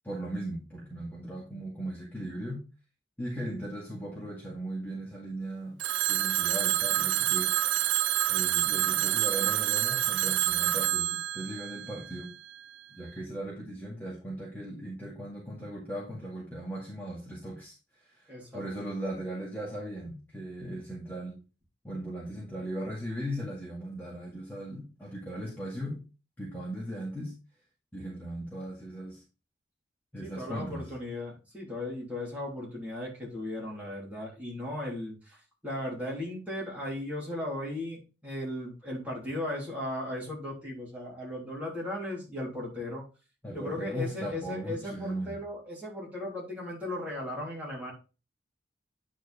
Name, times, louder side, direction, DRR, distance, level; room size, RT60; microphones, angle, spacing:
voice 1, 0.0-2.6 3.2-5.8 6.1-7.7 8.3-12.3 12.9-21.4 21.8-26.0 26.4-27.4 27.9-29.2 30.1-30.9 43.4-45.4, right 1 dB, 10° left, -5 dB, 2.0 m, -38 dB
Telephone, 5.8-12.6, right 14 dB, 80° right, 0.3 m, -28 dB
voice 2, 18.3-18.7 30.2-43.1 43.5-47.9, left 1 dB, 10° right, -5 dB, 3.3 m, -36 dB
9.4 x 4.5 x 4.2 m, 0.32 s
head